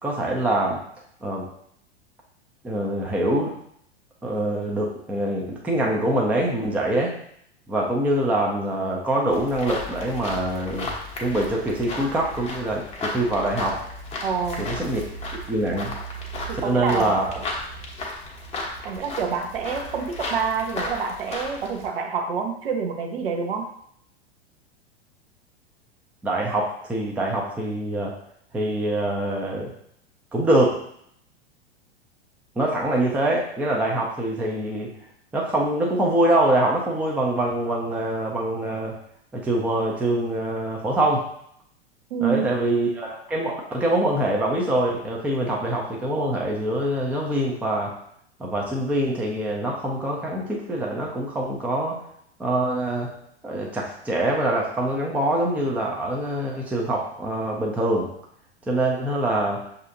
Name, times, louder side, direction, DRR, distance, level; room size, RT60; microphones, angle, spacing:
voice 1, 0.0-0.8 1.2-1.5 2.6-3.5 4.2-7.1 7.7-10.9 11.2-13.8 14.6-15.9 16.6-17.3 26.2-28.1 28.5-29.7 30.3-30.8 32.6-34.9 35.3-39.0 39.3-41.2 42.2-47.9 48.4-52.0 52.4-53.1 53.4-58.1 58.7-59.6, right 1 dB, 5° right, -2 dB, 0.5 m, -24 dB
sound 1, 9.3-21.9, left 2 dB, 20° left, 0.8 m, -34 dB
voice 2, 14.2-14.7 16.5-17.2 18.8-23.7 42.1-42.5, right 6 dB, 60° right, 3 dB, 0.8 m, -27 dB
6.3 x 2.7 x 2.6 m, 0.69 s
figure-of-eight pair, 90°, 33 cm